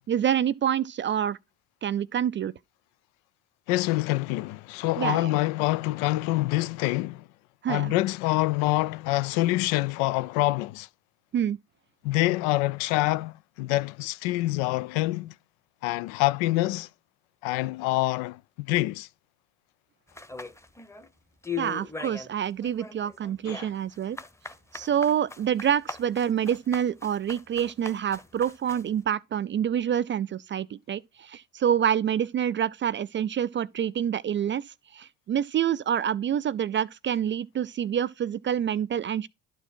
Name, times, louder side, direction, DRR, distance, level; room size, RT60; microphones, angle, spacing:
voice 1, 0.0-1.4 1.8-2.5 5.0-5.4 7.6-7.9 11.3-11.6 21.6-24.2 24.7-39.3, right 9 dB, 30° right, 0.4 m, -27 dB
voice 2, 3.7-7.3 7.7-10.9 12.0-15.3 15.8-16.9 17.4-19.1 23.5-23.7, left 18 dB, 70° left, 0.6 m, -26 dB
sound 1, 20.2-21.1 21.4-22.3 22.6-28.9, left 4 dB, 5° left, 0.9 m, -39 dB
12.0 x 4.6 x 4.3 m
hypercardioid pair, 60°, 44 cm